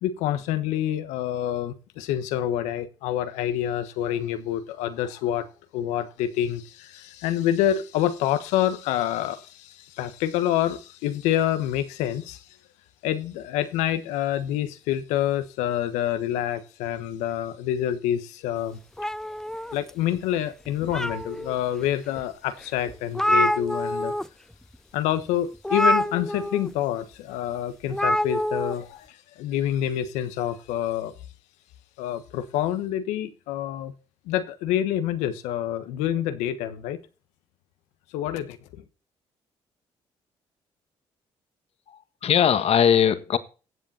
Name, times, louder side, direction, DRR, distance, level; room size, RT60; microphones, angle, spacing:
voice 1, 0.0-5.5 5.7-12.5 13.0-18.8 19.7-24.1 24.9-31.1 32.0-33.9 34.2-37.0 38.1-38.8, left 11 dB, 90° left, 1.2 m, -27 dB
sound 1, 19.0-20.2 20.7-21.6 22.2-22.3 22.6-22.7 22.9-24.3 24.5-24.8 25.6-26.7 27.9-28.7, equal, 5° left, 0.6 m, -25 dB
voice 2, 41.9-43.4, left 8 dB, 60° left, 1.6 m, -20 dB
15.5 x 7.6 x 4.3 m
supercardioid pair, 65°, 12 cm